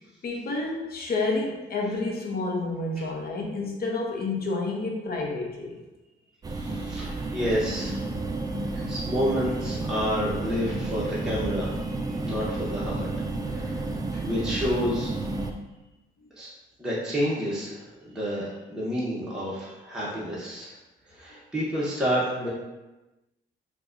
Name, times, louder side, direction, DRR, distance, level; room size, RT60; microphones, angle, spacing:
voice 1, 0.2-5.7, left 3 dB, 50° left, -1 dB, 0.8 m, -29 dB
sound 1, 6.4-15.5, right 2 dB, 20° right, 0.3 m, -31 dB
voice 2, 6.5-8.1 8.6-13.1 13.5-15.1 16.4-16.5 16.8-18.4 18.7-20.8 21.1-22.5, equal, 5° right, -8 dB, 0.9 m, -30 dB
4.5 x 2.3 x 2.5 m, 1.1 s
cardioid pair, 90°, 20 cm